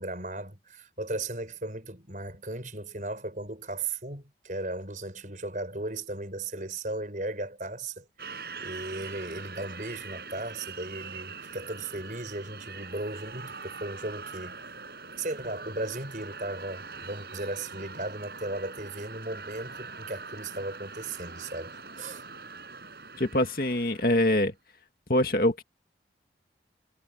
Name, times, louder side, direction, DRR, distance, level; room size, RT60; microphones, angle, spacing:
voice 1, 0.0-8.0 8.6-14.6 15.2-22.3, right 2 dB, 45° right, 6.5 m, -36 dB
sound 1, 8.2-24.4, right 4 dB, 60° right, 5.8 m, -43 dB
voice 2, 23.2-24.5 25.1-25.6, left 1 dB, 50° left, 2.0 m, -24 dB
head